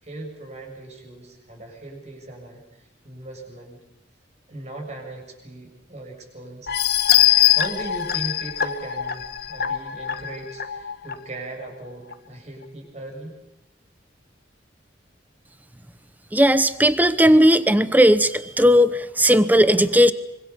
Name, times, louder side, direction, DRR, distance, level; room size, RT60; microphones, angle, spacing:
voice 1, 0.0-3.8 4.5-6.8 7.4-13.4, right 2 dB, 35° right, 2 dB, 7.1 m, -38 dB
sound 1, 6.7-11.1 11.6-11.7 12.1-12.2, left 12 dB, 55° left, 1.4 m, -22 dB
voice 2, 16.3-20.1, equal, 10° right, 13 dB, 0.9 m, -16 dB
25.5 x 25.0 x 7.1 m, 0.93 s
head